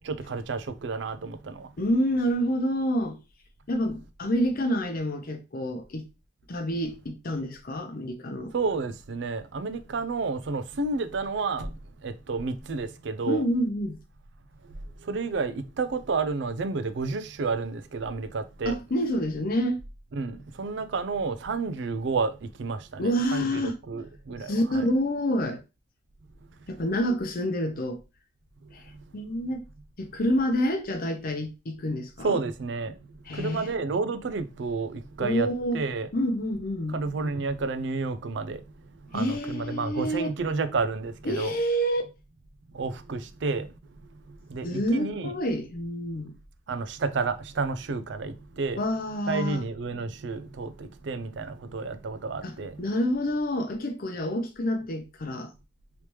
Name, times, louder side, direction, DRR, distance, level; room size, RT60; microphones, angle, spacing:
voice 1, 0.0-1.7 8.5-13.4 14.6-18.8 20.1-24.9 28.6-29.0 32.2-36.1 36.9-41.6 42.7-45.3 46.7-48.8 49.3-52.8, right 4 dB, 70° right, 0.5 m, -31 dB
voice 2, 1.8-3.2 3.7-6.0 6.5-8.5 13.3-14.0 18.6-19.8 23.0-23.7 24.5-25.6 26.7-28.0 28.7-28.8 29.1-29.6 30.0-32.3 33.3-33.7 35.2-35.8 36.1-37.0 39.1-40.3 41.2-42.0 44.6-46.4 48.8-49.6 52.4-55.5, equal, 50° left, 0.7 m, -28 dB
3.3 x 3.0 x 3.0 m
head